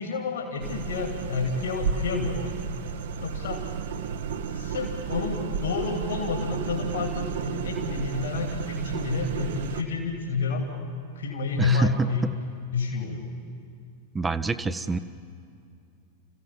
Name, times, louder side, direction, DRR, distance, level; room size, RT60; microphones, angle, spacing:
voice 1, 0.0-2.7 3.2-3.6 4.5-10.7 11.1-12.2 12.7-13.2, left 4 dB, 65° left, 2 dB, 2.7 m, -29 dB
sound 1, 0.6-9.8, right 6 dB, 60° right, 1.1 m, -32 dB
voice 2, 11.6-12.1 14.1-15.0, right 4 dB, 15° right, 11 dB, 0.7 m, -26 dB
30.0 x 15.0 x 7.4 m, 2.4 s
figure-of-eight pair, 90°, 0 cm